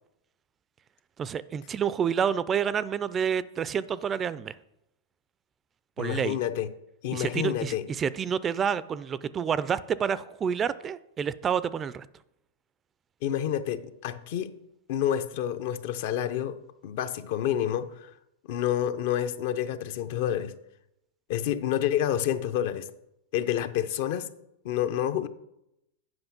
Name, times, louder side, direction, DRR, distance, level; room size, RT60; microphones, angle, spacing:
voice 1, 1.2-4.5 6.0-6.4 7.1-12.1, right 7 dB, 25° right, 17 dB, 0.3 m, -28 dB
voice 2, 6.0-6.7 7.0-7.9 13.2-14.5 14.9-18.1 18.5-20.6 21.3-22.9 23.3-24.3 24.6-25.3, left 10 dB, 60° left, 11 dB, 0.6 m, -29 dB
7.9 x 5.3 x 5.8 m, 0.83 s
hypercardioid pair, 125°, 0 cm